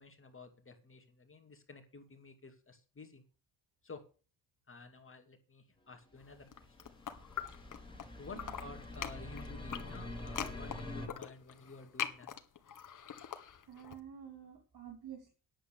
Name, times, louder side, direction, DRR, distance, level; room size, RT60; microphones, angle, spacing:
voice 1, 0.0-3.2 3.8-4.1 4.7-6.8 7.1-7.2 8.2-12.3, left 3 dB, 30° left, 5 dB, 2.4 m, -52 dB
sound 1, 6.3-11.1, left 2 dB, 10° left, 4.1 m, -45 dB
sound 2, 6.4-8.1 8.3-14.0, left 8 dB, 45° left, 1.9 m, -43 dB
voice 2, 13.6-15.3, right 9 dB, 60° right, 4 dB, 2.9 m, -49 dB
10.0 x 7.9 x 6.7 m, 0.36 s
supercardioid pair, 70°, 44 cm